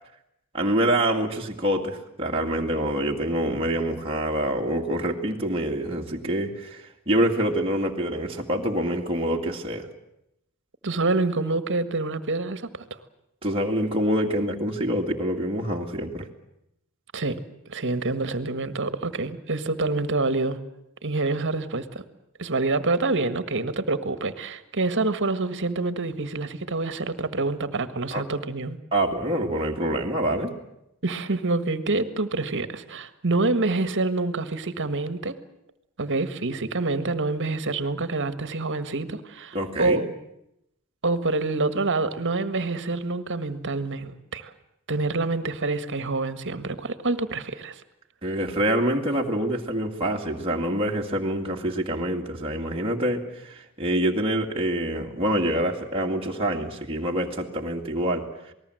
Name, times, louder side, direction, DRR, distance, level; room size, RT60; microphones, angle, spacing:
voice 1, 0.5-9.9 13.4-16.3 28.1-28.3 28.9-30.5 39.5-40.0 48.2-58.3, right 1 dB, 25° right, -1 dB, 2.2 m, -26 dB
voice 2, 10.8-12.7 17.1-17.4 17.7-20.6 21.0-22.0 22.4-28.8 31.0-35.4 36.0-40.1 41.0-44.5 44.9-47.8, right 3 dB, 55° right, 12 dB, 1.7 m, -27 dB
27.5 x 19.5 x 7.8 m, 0.81 s
head